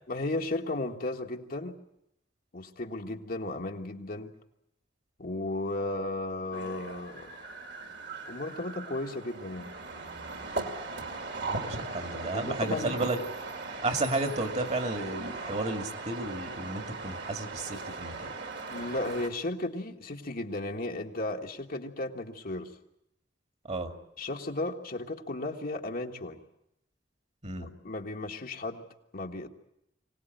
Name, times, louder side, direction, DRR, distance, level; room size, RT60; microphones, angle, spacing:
voice 1, 0.1-1.7 2.5-4.3 5.2-7.4 8.3-9.7 12.3-12.9 18.7-22.7 24.2-26.4 27.6-28.8 29.1-29.5, left 2 dB, 50° left, 3 dB, 1.5 m, -34 dB
sound 1, 6.5-19.3, right 3 dB, 65° right, 2.5 m, -38 dB
voice 2, 11.5-13.2 13.8-18.3 23.7-23.9 27.4-27.7, right 2 dB, 35° right, 6 dB, 2.1 m, -32 dB
24.0 x 18.5 x 9.1 m, 0.81 s
head